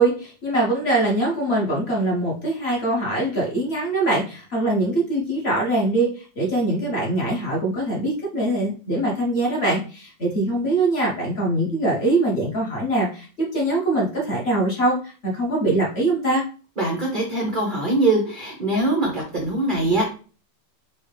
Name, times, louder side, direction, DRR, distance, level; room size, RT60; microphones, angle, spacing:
voice 1, 0.0-16.4, right 2 dB, 45° left, -2 dB, 0.9 m, -23 dB
voice 2, 16.8-20.1, right 2 dB, 65° right, 0 dB, 0.4 m, -22 dB
4.3 x 2.2 x 3.3 m, 0.37 s
omnidirectional pair, 2.0 m